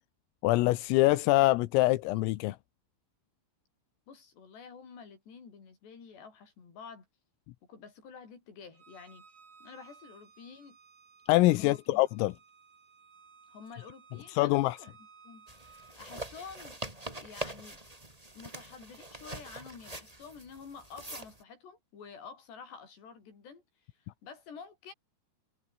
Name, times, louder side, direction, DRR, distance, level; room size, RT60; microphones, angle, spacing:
voice 1, 0.4-2.6 11.3-12.3 14.4-14.8, left 19 dB, 85° left, 3.7 m, -24 dB
voice 2, 4.1-7.1 7.7-9.3 9.6-10.8 11.5-12.0 13.5-14.9 15.2-16.8 17.2-17.8 18.3-23.6 23.9-24.9, left 6 dB, 55° left, 7.9 m, -49 dB
Bowed string instrument, 8.7-16.0, right 5 dB, 60° right, 8.1 m, -58 dB
sound 1, 15.5-21.4, right 1 dB, 10° right, 3.0 m, -44 dB
omnidirectional pair, 5.9 m